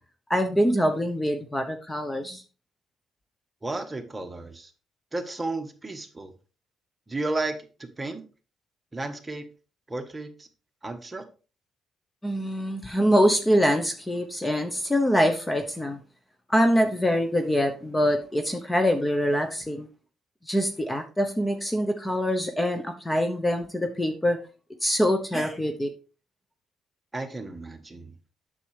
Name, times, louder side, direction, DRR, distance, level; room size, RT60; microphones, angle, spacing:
voice 1, 0.3-2.4 12.2-16.0 16.5-19.9 20.5-24.4 24.8-25.9, equal, 15° left, 6 dB, 1.0 m, -24 dB
voice 2, 3.6-4.7 5.1-6.3 7.1-8.2 8.9-9.4 9.9-10.5 10.8-11.2 27.1-28.1, right 2 dB, 20° right, 5 dB, 1.4 m, -33 dB
8.3 x 6.9 x 3.4 m, 0.33 s
cardioid pair, 90°, 0 cm